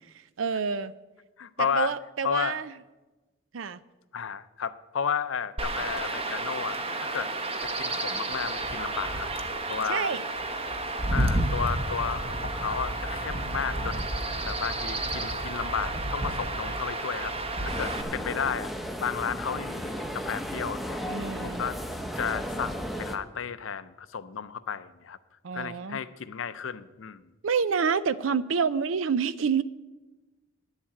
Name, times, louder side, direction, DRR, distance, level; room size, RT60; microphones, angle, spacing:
voice 1, 0.4-1.0 1.6-2.7 3.5-3.8 9.9-10.2 21.1-21.6 25.4-26.0 27.4-29.6, right 6 dB, 80° right, 16 dB, 0.5 m, -28 dB
voice 2, 1.4-1.9 2.2-2.6 4.1-7.3 7.6-9.3 9.7-10.2 11.1-14.0 14.5-17.3 17.6-18.7 19.0-21.0 21.4-21.8 22.2-25.2 25.5-27.2, left 7 dB, 75° left, 14 dB, 0.6 m, -33 dB
Chirp tweet / Wind / Stream, 5.6-18.0, right 2 dB, 30° right, 1.0 m, -31 dB
sound 1, 17.7-23.2, equal, ahead, 0.7 m, -34 dB
10.5 x 7.3 x 8.5 m, 1.2 s
head